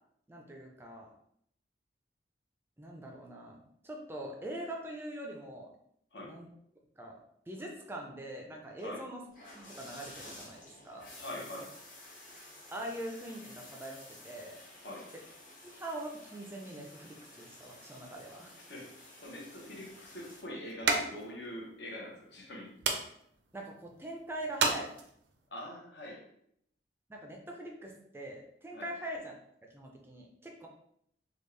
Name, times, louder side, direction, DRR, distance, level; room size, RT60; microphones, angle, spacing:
voice 1, 0.3-1.1 2.8-5.7 6.2-6.5 7.0-7.2 7.5-9.2 9.5-11.4 12.7-14.0 14.2-14.6 15.7-18.5 23.5-24.9 27.1-29.3 29.7-30.7, right 1 dB, 15° right, 0 dB, 0.4 m, -43 dB
sound 1, 9.3-20.4, left 1 dB, 45° left, 0.9 m, -52 dB
voice 2, 11.1-11.8 14.8-15.1 18.7-22.7 25.5-26.3 28.7-28.9, left 1 dB, 70° left, -2 dB, 0.9 m, -44 dB
sound 2, 19.2-25.5, right 4 dB, 80° right, 0.5 m, -36 dB
3.4 x 2.3 x 3.2 m, 0.71 s
head